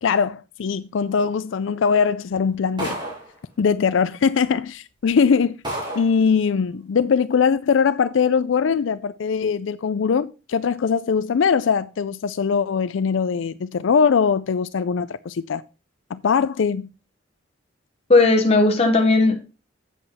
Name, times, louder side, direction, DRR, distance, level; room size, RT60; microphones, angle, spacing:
voice 1, 0.0-3.0 3.6-5.6 6.0-15.6 16.1-16.9, left 6 dB, 80° left, 0.4 m, -21 dB
sound 1, 2.8-3.4 4.4-4.5 5.0-5.1 5.6-6.2, right 1 dB, 25° right, 3.9 m, -30 dB
voice 2, 18.1-19.5, left 3 dB, 35° left, 1.2 m, -16 dB
8.0 x 7.8 x 4.2 m
head